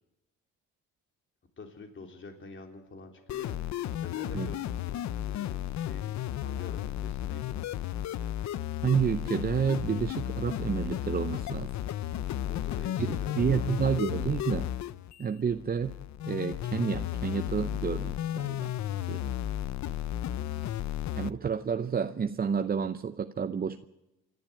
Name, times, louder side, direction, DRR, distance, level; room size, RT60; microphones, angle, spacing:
voice 1, 1.6-3.6 3.9-6.1 6.4-7.6 12.4-13.8, left 3 dB, 40° left, 3 dB, 3.6 m, -47 dB
sound 1, 3.3-21.3, left 12 dB, 65° left, 0.7 m, -34 dB
voice 2, 8.8-11.7 13.0-14.7 15.2-15.9 16.3-18.7 19.1-19.3 21.2-23.8, right 6 dB, 30° right, 10 dB, 0.7 m, -30 dB
27.0 x 12.0 x 8.9 m, 0.97 s
cardioid pair, 90°, 30 cm